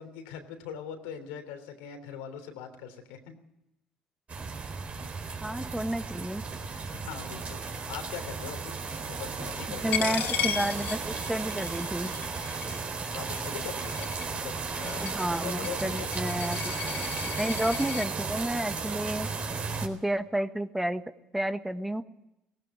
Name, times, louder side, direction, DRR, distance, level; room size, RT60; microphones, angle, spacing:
voice 1, 0.0-3.4 5.0-5.6 6.6-8.8 9.1-10.2 10.4-10.6 12.7-12.8 13.1-15.0 15.4-16.4, left 8 dB, 85° left, 6 dB, 3.4 m, -42 dB
sound 1, 4.3-19.9, right 4 dB, 40° right, 4.0 m, -35 dB
voice 2, 5.4-6.4 9.7-12.1 15.0-16.8 17.4-19.3 19.8-21.0 21.3-22.0, right 1 dB, 5° right, 9 dB, 1.4 m, -31 dB
Coin (dropping), 9.9-18.1, left 9 dB, 70° left, 3.6 m, -36 dB
18.0 x 17.0 x 9.0 m, 0.88 s
supercardioid pair, 75°, 3 cm